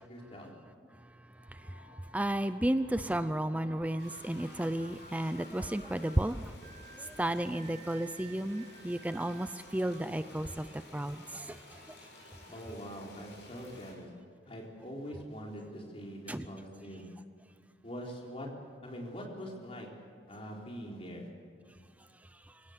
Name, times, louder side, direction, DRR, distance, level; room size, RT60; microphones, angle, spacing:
voice 1, 0.1-0.5 12.5-14.1 14.5-17.1 17.8-18.5 18.8-19.9 20.3-21.3, equal, 35° left, -1 dB, 4.2 m, -43 dB
sound 1, 1.4-14.2, right 4 dB, 45° right, 2.0 m, -57 dB
voice 2, 1.5-6.5 6.9-12.0 16.3-16.5 22.5-22.6, right 1 dB, 10° right, 11 dB, 0.5 m, -33 dB
sound 2, 4.0-13.9, left 2 dB, 80° left, 7.1 m, -54 dB
25.0 x 17.0 x 8.2 m, 2.2 s
head